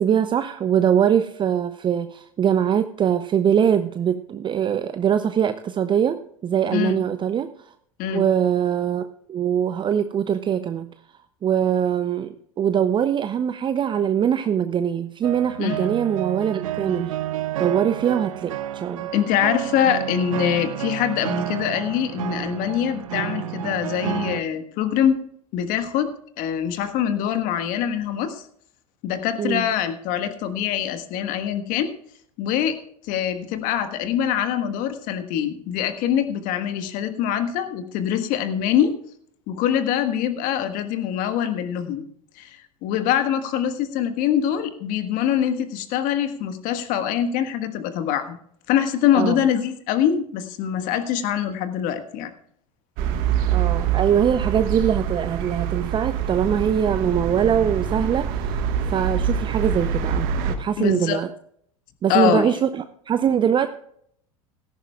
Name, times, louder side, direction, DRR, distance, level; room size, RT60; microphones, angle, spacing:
voice 1, 0.0-7.5 8.1-9.0 9.3-10.9 11.4-17.1 17.6-19.1 29.4-29.7 49.2-49.4 53.5-61.3 62.0-63.7, right 8 dB, 25° right, 11 dB, 0.6 m, -22 dB
sound 1, 15.2-24.4, right 12 dB, 70° right, 0.7 m, -30 dB
voice 2, 19.1-25.2 25.5-26.1 26.4-28.4 29.0-31.9 32.4-32.8 33.0-38.9 39.5-42.0 42.4-48.4 48.7-52.3 60.8-61.2 62.1-62.5, left 9 dB, 50° left, 9 dB, 1.5 m, -24 dB
sound 2, 53.0-60.6, right 8 dB, 55° right, 1.5 m, -25 dB
17.0 x 14.0 x 2.4 m, 0.66 s
figure-of-eight pair, 80°, 18 cm